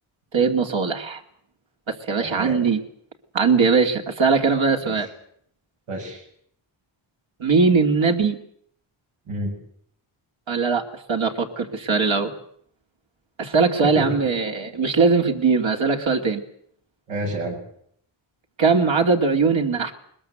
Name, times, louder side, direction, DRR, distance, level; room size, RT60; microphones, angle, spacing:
voice 1, 0.3-1.2 1.9-2.8 3.3-5.1 7.4-8.4 10.5-12.3 13.4-16.4 18.6-19.9, right 4 dB, 65° right, 3 dB, 2.6 m, -20 dB
voice 2, 2.2-2.7 4.8-5.0 5.9-6.2 9.3-9.6 13.8-14.1 17.1-17.6, right 1 dB, 90° right, 0 dB, 7.2 m, -29 dB
21.0 x 21.0 x 7.8 m, 0.66 s
wide cardioid pair, 105°, 50 cm